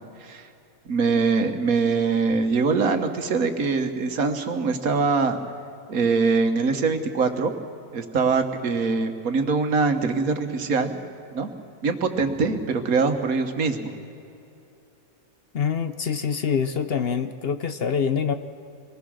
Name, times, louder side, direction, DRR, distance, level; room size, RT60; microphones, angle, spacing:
voice 1, 0.9-5.4 5.9-7.5 7.9-10.9 11.3-11.5 11.8-13.9, right 4 dB, 85° right, 7 dB, 1.7 m, -23 dB
voice 2, 15.5-18.3, left 6 dB, 55° left, 10 dB, 0.8 m, -25 dB
25.0 x 19.5 x 6.4 m, 2.8 s
omnidirectional pair, 1.4 m